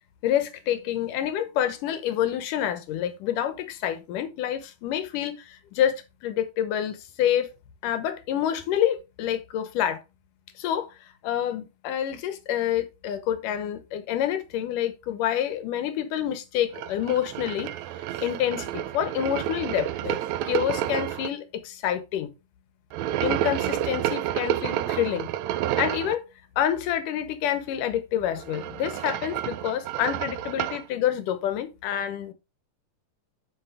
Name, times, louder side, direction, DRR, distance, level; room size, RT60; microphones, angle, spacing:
voice 1, 0.2-7.5 7.8-10.0 10.6-11.0 11.2-17.7 18.1-22.3 23.2-25.3 25.8-26.2 26.6-32.3, left 10 dB, 85° left, 2.7 m, -27 dB
sound 1, 16.7-21.3 22.9-26.1 28.3-30.8, right 12 dB, 75° right, 1.7 m, -30 dB
10.5 x 6.0 x 3.5 m
omnidirectional pair, 3.6 m